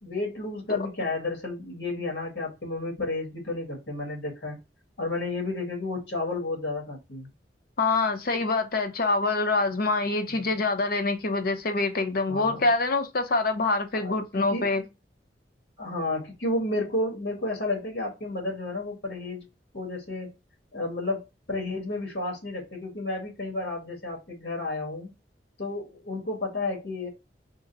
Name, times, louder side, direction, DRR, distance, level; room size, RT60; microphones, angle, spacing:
voice 1, 0.0-4.6 5.0-7.3 10.3-10.6 12.3-12.7 14.0-14.2 14.5-14.7 15.8-19.5 19.7-20.3 20.7-25.1 25.6-27.1, left 2 dB, 85° left, 1.7 m, -32 dB
voice 2, 7.8-14.8, left 3 dB, 55° left, 0.7 m, -25 dB
3.8 x 2.2 x 3.9 m
head